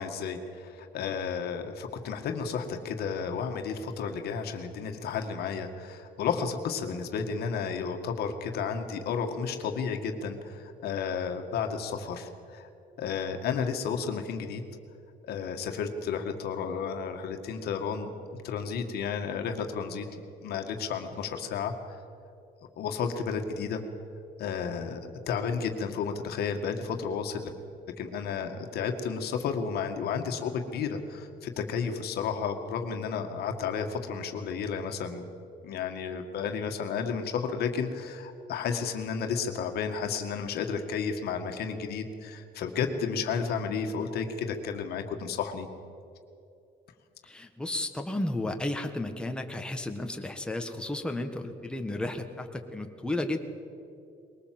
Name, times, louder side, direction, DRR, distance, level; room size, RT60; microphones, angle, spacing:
voice 1, 0.0-12.7 13.0-14.6 15.3-18.1 18.4-22.0 22.8-23.8 24.4-27.5 28.0-35.2 35.6-45.7, left 6 dB, 70° left, 5 dB, 1.9 m, -32 dB
voice 2, 47.2-53.4, left 1 dB, 5° left, 4 dB, 1.6 m, -33 dB
21.5 x 19.0 x 7.8 m, 2.6 s
cardioid pair, 110°, 17 cm